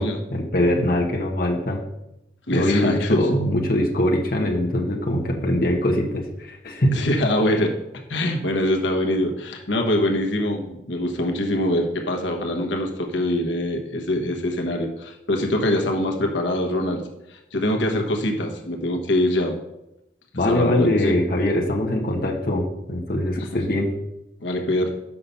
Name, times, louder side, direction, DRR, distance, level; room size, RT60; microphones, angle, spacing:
voice 1, 0.3-1.8 2.5-7.1 20.3-23.9, left 1 dB, 50° left, 0 dB, 1.1 m, -22 dB
voice 2, 2.5-3.3 6.9-7.7 8.1-17.0 17.3-19.6 20.4-21.2 23.4-23.5 24.4-24.9, left 1 dB, 80° left, 2 dB, 1.1 m, -24 dB
5.8 x 5.6 x 6.7 m, 0.89 s
head